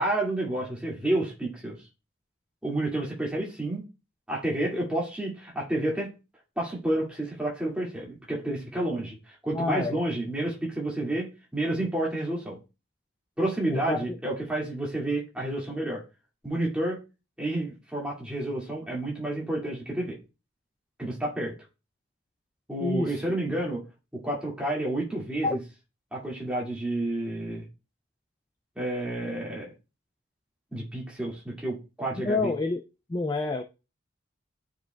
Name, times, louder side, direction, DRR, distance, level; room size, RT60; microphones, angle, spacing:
voice 1, 0.0-1.8 2.6-3.8 4.3-6.1 6.6-12.6 13.4-16.0 16.4-17.0 17.4-20.2 21.0-21.5 22.7-23.8 24.1-25.6 26.1-27.7 28.8-29.7 30.7-32.5, right 1 dB, 5° right, -4 dB, 2.1 m, -30 dB
voice 2, 9.5-10.0 13.7-14.0 22.8-23.2 25.4-25.6 32.2-32.8 33.1-33.6, left 3 dB, 20° left, 5 dB, 0.3 m, -28 dB
12.0 x 5.0 x 2.3 m, 0.29 s
head